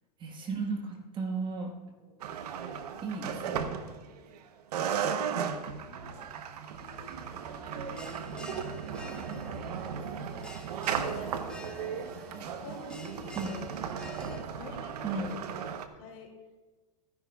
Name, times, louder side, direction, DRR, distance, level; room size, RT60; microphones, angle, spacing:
voice 1, 0.2-1.7 3.0-3.7 13.3-13.6 15.0-15.3, right 4 dB, 25° right, 3 dB, 1.4 m, -34 dB
sound 1, 2.2-4.4 4.7-15.9, right 7 dB, 75° right, 0.9 m, -36 dB
voice 2, 3.9-4.4 5.9-7.1 8.0-8.6 9.0-10.4 10.9-13.7 14.2-15.2 15.5-16.3, left 4 dB, 55° left, 1 dB, 2.5 m, -50 dB
Bell, 6.9-14.4, left 2 dB, 5° left, 0.8 m, -50 dB
15.5 x 10.5 x 2.3 m, 1.3 s
hypercardioid pair, 125°, 20 cm